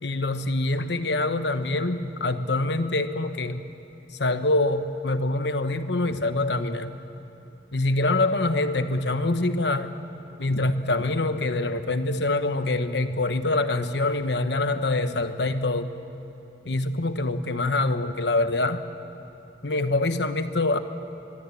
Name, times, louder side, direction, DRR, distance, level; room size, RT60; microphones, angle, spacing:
voice 1, 0.0-3.7 4.1-6.9 7.7-10.0 10.4-15.9 16.6-18.8 19.6-20.8, left 2 dB, 75° left, 10 dB, 1.1 m, -25 dB
23.5 x 22.0 x 8.5 m, 2.9 s
head